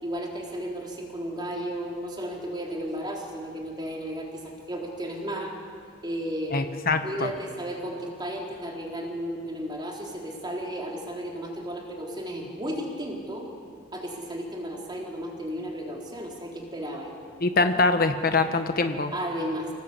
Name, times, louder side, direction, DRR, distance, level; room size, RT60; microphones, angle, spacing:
voice 1, 0.0-5.5 6.0-6.6 7.0-13.5 13.9-17.1 19.1-19.7, equal, 25° right, -1 dB, 3.7 m, -34 dB
voice 2, 6.5-7.3 17.4-19.1, left 3 dB, 50° left, 7 dB, 1.2 m, -23 dB
27.0 x 17.5 x 8.3 m, 2.8 s
head